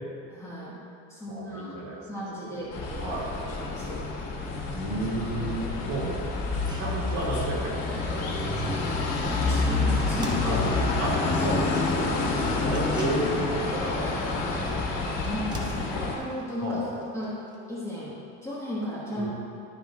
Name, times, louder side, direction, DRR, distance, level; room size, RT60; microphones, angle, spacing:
voice 1, 0.3-0.8 1.1-1.7 2.1-3.1 3.5-4.0 5.8-6.1 9.2-11.6 15.2-16.9 17.1-17.4 17.7-19.3, left 1 dB, 10° left, -8 dB, 1.2 m, -35 dB
voice 2, 1.3-2.0 2.4-2.7 3.0-3.3 4.7-6.2 6.8-7.7 8.1-8.8 10.4-10.7 11.0-11.1 11.4-12.1 12.6-14.7 16.6-16.9 19.2-19.3, right 2 dB, 50° right, -3 dB, 1.8 m, -32 dB
sound 1, 2.7-16.2, left 3 dB, 65° left, 1.7 m, -28 dB
sound 2, 5.4-5.5 5.9-6.0 6.4-18.1, right 1 dB, 10° right, 0.7 m, -47 dB
11.5 x 5.0 x 3.6 m, 2.7 s
cardioid pair, 165°, 35 cm